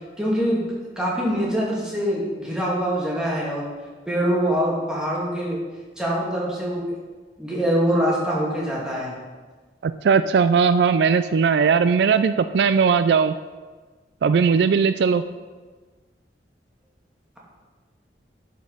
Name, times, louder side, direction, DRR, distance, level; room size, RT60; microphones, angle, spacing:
voice 1, 0.2-0.6 1.0-3.7 4.1-5.6 6.0-6.9 7.4-9.1, equal, 5° right, -6 dB, 2.4 m, -24 dB
voice 2, 9.8-13.3 14.2-15.2, right 6 dB, 70° right, 11 dB, 0.3 m, -18 dB
11.5 x 5.2 x 5.5 m, 1.4 s
head